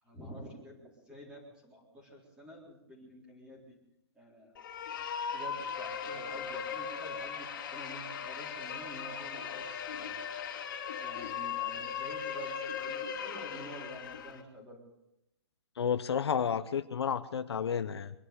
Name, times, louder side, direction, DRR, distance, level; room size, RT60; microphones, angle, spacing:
voice 1, 0.0-3.8 4.1-10.2 11.0-14.8, equal, 5° right, -2 dB, 3.9 m, -49 dB
sound 1, 4.5-14.4, left 7 dB, 50° left, 2.5 m, -38 dB
voice 2, 15.8-18.1, left 7 dB, 75° left, 11 dB, 0.9 m, -31 dB
25.0 x 11.0 x 5.2 m, 0.86 s
hypercardioid pair, 165°, 14 cm